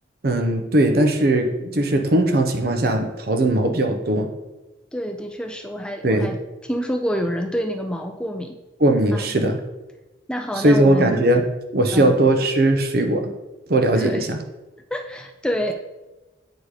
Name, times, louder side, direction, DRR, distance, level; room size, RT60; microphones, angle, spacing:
voice 1, 0.2-4.3 6.0-6.3 8.8-9.6 10.5-11.4 11.7-13.3 13.7-14.4, right 1 dB, 55° right, 6 dB, 0.8 m, -19 dB
voice 2, 4.9-8.6 9.1-9.2 10.3-11.2 11.9-12.1 14.0-14.3 14.9-15.7, equal, 5° left, 4 dB, 0.4 m, -27 dB
8.3 x 4.0 x 4.9 m, 1.1 s
head